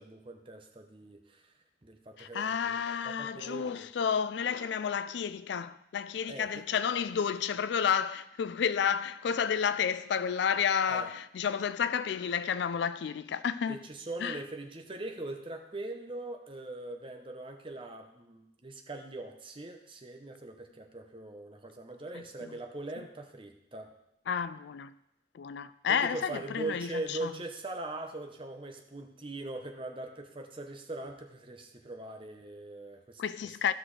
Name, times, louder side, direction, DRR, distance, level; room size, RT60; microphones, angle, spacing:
voice 1, 0.0-1.5 1.8-3.9 6.3-6.5 10.9-11.1 13.7-23.9 25.9-33.5, right 2 dB, 25° right, 0.8 m, -41 dB
voice 2, 2.2-13.8 14.2-14.4 22.1-22.6 24.3-24.9 25.3-27.3 33.2-33.7, left 7 dB, 65° left, 0.3 m, -31 dB
14.5 x 6.0 x 3.3 m
head